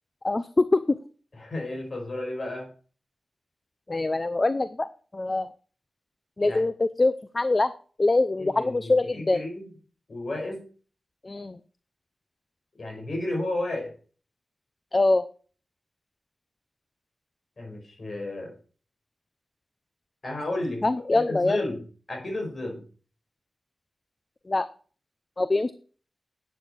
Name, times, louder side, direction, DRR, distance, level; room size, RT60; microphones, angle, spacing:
voice 1, 0.2-1.0 3.9-4.9 5.1-5.5 6.4-7.7 8.0-9.4 11.2-11.6 14.9-15.2 20.8-21.7 24.5-24.7 25.4-25.7, left 2 dB, 30° left, 13 dB, 0.6 m, -24 dB
voice 2, 1.4-2.7 6.4-6.6 8.4-9.6 10.1-10.6 12.8-13.9 17.6-18.5 20.2-21.8 22.1-22.8, left 2 dB, 50° left, 3 dB, 5.3 m, -32 dB
12.0 x 9.2 x 4.6 m, 0.40 s
wide cardioid pair, 85°, 0 cm